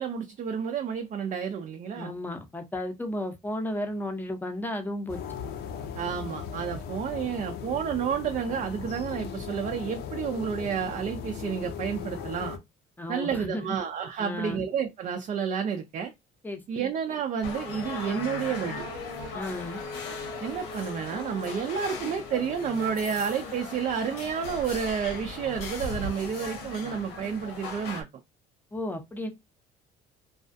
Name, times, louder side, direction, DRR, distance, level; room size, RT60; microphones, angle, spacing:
voice 1, 0.0-2.1 6.0-12.6 13.1-16.1 16.7-18.8 20.4-28.1, right 7 dB, 45° right, 0.4 m, -30 dB
voice 2, 1.9-5.2 13.0-13.8 14.2-14.6 16.4-16.6 19.3-19.8 28.7-29.3, left 1 dB, 10° left, 0.6 m, -33 dB
sound 1, 5.1-12.6, left 7 dB, 65° left, 0.6 m, -38 dB
sound 2, 17.4-28.0, left 3 dB, 80° left, 0.9 m, -37 dB
2.4 x 2.2 x 2.5 m
cardioid pair, 100°, 18 cm